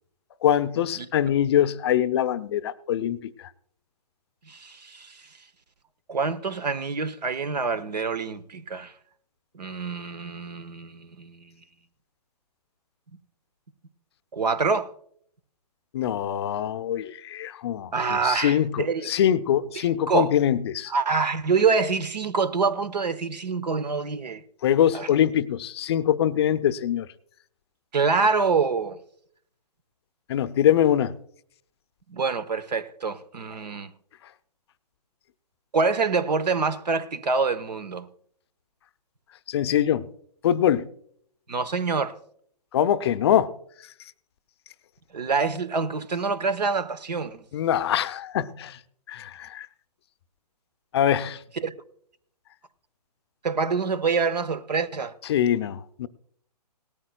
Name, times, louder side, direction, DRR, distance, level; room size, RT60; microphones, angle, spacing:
voice 1, 0.4-3.5 15.9-20.9 24.6-27.1 30.3-31.2 39.5-40.1 40.4-40.9 42.7-43.5 47.5-48.8 49.1-49.7 50.9-51.4 55.3-56.1, left 10 dB, 40° left, 0.5 m, -23 dB
voice 2, 4.5-5.2 6.1-8.9 9.5-11.5 14.3-14.9 17.9-19.1 19.8-20.3 20.9-24.4 24.9-25.1 27.9-29.0 32.1-33.9 35.7-38.1 41.5-42.2 45.1-47.4 51.6-51.7 53.4-55.1, right 4 dB, 80° right, 1.0 m, -26 dB
18.5 x 13.5 x 2.3 m
hypercardioid pair, 135°, 21 cm